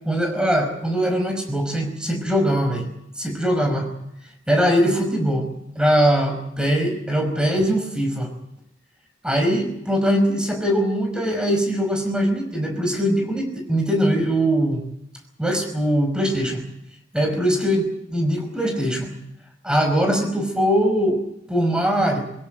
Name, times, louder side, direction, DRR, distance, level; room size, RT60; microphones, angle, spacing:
voice 1, 0.0-2.8 3.2-3.9 4.5-5.5 5.8-8.3 9.2-14.8 15.4-16.6 17.1-19.1 19.6-21.2 21.5-22.2, equal, 5° right, 4 dB, 5.3 m, -21 dB
22.0 x 17.0 x 9.2 m, 0.79 s
head